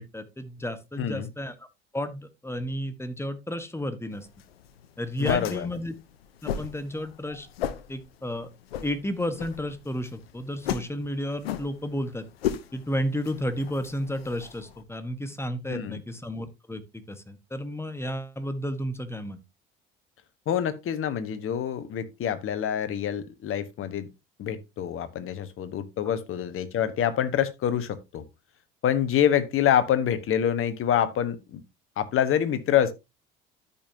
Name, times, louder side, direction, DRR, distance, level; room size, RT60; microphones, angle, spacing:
voice 1, 0.0-1.7 1.9-4.3 5.0-5.9 6.4-7.5 7.9-8.5 8.8-12.3 12.7-19.4, equal, 10° left, 1.4 m, -32 dB
voice 2, 1.0-1.3 5.2-5.7 15.7-16.0 20.5-24.1 24.4-28.2 28.8-31.6 32.0-32.9, left 9 dB, 45° left, 1.3 m, -26 dB
sound 1, 4.1-14.8, left 10 dB, 85° left, 0.8 m, -37 dB
13.0 x 5.5 x 2.8 m
hypercardioid pair, 65°, 29 cm